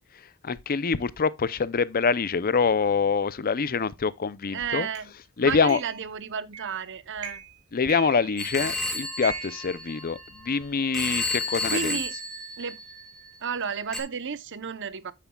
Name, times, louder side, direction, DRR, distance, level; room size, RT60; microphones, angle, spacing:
voice 1, 0.4-4.9 5.4-5.8 7.7-12.0, left 5 dB, 40° left, 0.6 m, -25 dB
voice 2, 4.5-5.1 5.4-7.4 11.7-12.1 12.6-12.8 13.4-15.1, right 6 dB, 55° right, 0.9 m, -32 dB
sound 1, 4.9-5.1 5.7-6.0 6.5-6.8 7.2-7.6 7.9-8.7 9.2-10.5, right 7 dB, 80° right, 4.6 m, -39 dB
Telephone, 8.4-10.5 10.9-13.3 13.9-14.0, left 1 dB, 5° left, 1.9 m, -32 dB
9.3 x 8.2 x 2.3 m
head